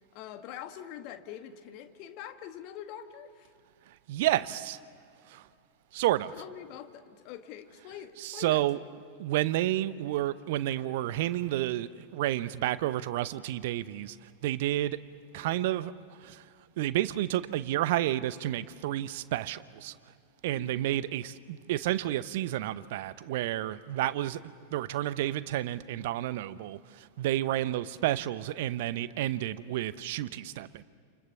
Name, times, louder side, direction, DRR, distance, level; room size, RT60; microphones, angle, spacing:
voice 1, 0.1-3.5 6.3-8.8 20.5-20.8, left 10 dB, 40° left, 1.7 m, -44 dB
voice 2, 4.1-4.8 5.3-5.4 5.9-6.3 8.2-8.8 9.2-14.2 14.4-15.0 15.3-15.9 16.2-16.4 16.8-20.0 20.4-24.4 24.7-30.8, right 14 dB, 50° right, 0.8 m, -30 dB
29.5 x 27.5 x 7.0 m
figure-of-eight pair, 90°, 0 cm